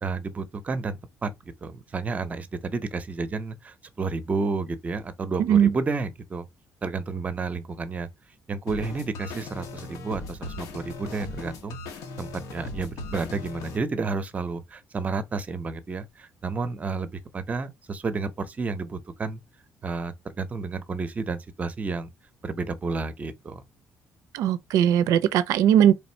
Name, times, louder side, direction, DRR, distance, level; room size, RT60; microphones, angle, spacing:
voice 1, 0.0-1.3 1.6-6.5 6.8-8.1 8.5-11.8 12.2-19.4 19.8-22.1 22.4-23.6, right 4 dB, 25° right, 0.6 m, -31 dB
sound 1, 8.7-13.8, left 2 dB, 85° left, 0.9 m, -38 dB
voice 2, 24.3-25.9, right 10 dB, 80° right, 0.4 m, -19 dB
3.3 x 2.6 x 4.3 m
cardioid pair, 135°, 6 cm